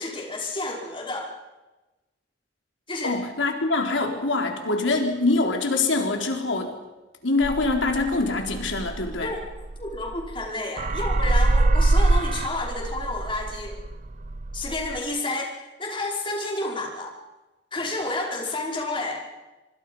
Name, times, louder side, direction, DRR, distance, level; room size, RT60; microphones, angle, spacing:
voice 1, 0.0-1.3 2.9-3.1 9.2-9.4 9.8-13.8 14.5-17.2 17.7-19.2, left 2 dB, 25° left, -1 dB, 5.2 m, -30 dB
voice 2, 3.0-6.7 7.2-9.3, left 3 dB, 85° left, 3 dB, 4.0 m, -24 dB
sound 1, 7.4-10.5 10.8-15.0, right 2 dB, 40° right, 0.7 m, -24 dB
25.0 x 24.5 x 5.6 m, 1.1 s
head